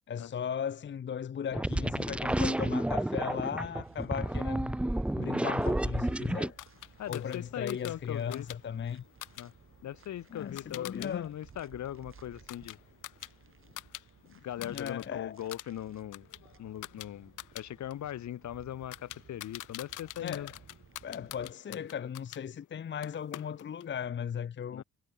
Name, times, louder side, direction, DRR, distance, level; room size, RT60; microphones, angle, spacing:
voice 1, 0.1-4.8 5.2-6.6 7.1-9.0 10.3-11.3 14.6-15.4 20.2-20.5 21.0-24.8, left 8 dB, 40° left, 0.8 m, -37 dB
sound 1, 1.5-6.5, right 1 dB, 5° right, 0.4 m, -31 dB
voice 2, 2.4-2.8 7.0-8.5 9.4-9.5 9.8-12.8 14.2-16.3 16.6-20.5 24.7-24.8, left 12 dB, 70° left, 1.8 m, -40 dB
sound 2, 3.8-21.5, right 6 dB, 45° right, 4.4 m, -58 dB
sound 3, 6.6-11.1 11.4-14.0 14.3-15.1 15.4-22.4 23.0-23.9, left 15 dB, 85° left, 3.0 m, -47 dB
cardioid pair, 90°, 30 cm